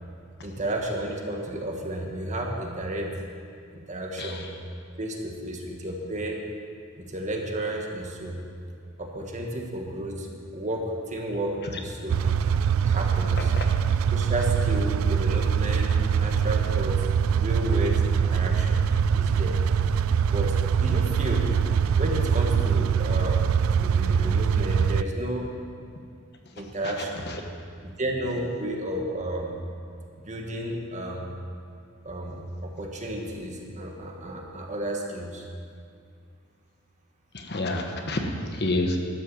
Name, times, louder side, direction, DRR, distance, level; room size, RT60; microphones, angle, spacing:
voice 1, 0.4-3.1 3.7-4.5 5.0-6.4 7.0-8.4 9.0-12.2 12.8-13.5 14.1-17.0 17.3-18.8 19.1-19.6 20.3-21.5 22.0-25.5 26.6-27.3 27.8-29.5 30.2-31.3 32.0-35.5, right 1 dB, 35° right, 1 dB, 1.6 m, -32 dB
voice 2, 4.2-4.5 13.4-13.7 26.8-27.4 37.3-39.0, left 2 dB, 55° left, 3 dB, 1.2 m, -29 dB
sound 1, 12.1-25.0, right 7 dB, 80° right, 0.3 m, -23 dB
12.0 x 9.0 x 7.0 m, 2.3 s
head